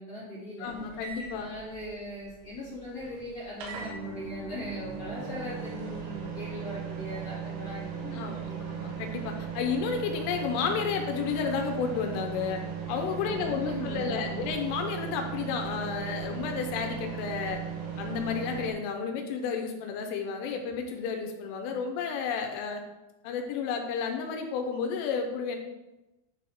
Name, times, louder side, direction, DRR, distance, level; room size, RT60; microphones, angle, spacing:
voice 1, 0.0-8.7 13.2-14.5, left 1 dB, 50° left, -10 dB, 0.9 m, -39 dB
voice 2, 0.6-1.5 8.1-8.4 8.7-12.6 12.9-17.6 18.0-22.8 23.2-25.6, left 6 dB, 80° left, 4 dB, 3.2 m, -32 dB
sound 1, 0.6-18.7, right 7 dB, 85° right, 3.8 m, -38 dB
10.0 x 3.5 x 4.2 m, 0.99 s
omnidirectional pair, 5.8 m